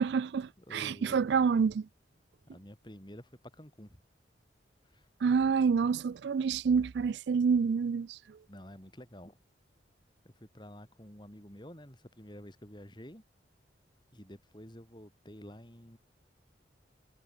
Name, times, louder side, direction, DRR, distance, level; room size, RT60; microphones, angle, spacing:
voice 1, 0.0-1.9 5.2-8.4, right 6 dB, 65° right, 0.3 m, -28 dB
voice 2, 0.6-1.4 2.5-4.0 4.8-5.1 8.5-9.4 10.2-13.2 14.1-16.0, equal, 25° left, 4.7 m, -50 dB
head